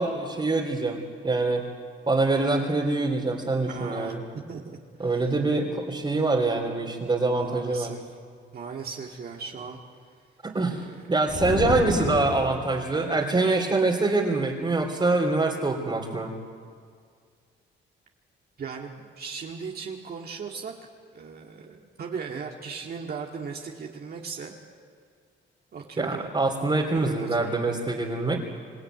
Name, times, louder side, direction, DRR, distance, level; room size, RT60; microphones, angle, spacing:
voice 1, 0.0-1.7 2.1-4.2 5.0-7.9 10.4-16.3 26.0-28.4, right 3 dB, 25° right, -4 dB, 3.2 m, -25 dB
voice 2, 3.5-4.1 4.5-5.5 7.3-8.0 8.5-9.8 10.7-11.1 18.6-24.5 25.7-26.3 27.0-27.6, right 5 dB, 50° right, 0 dB, 2.2 m, -38 dB
sound 1, 11.3-12.9, left 4 dB, 60° left, 4.5 m, -30 dB
27.0 x 14.5 x 9.4 m, 2.1 s
cardioid pair, 90°, 20 cm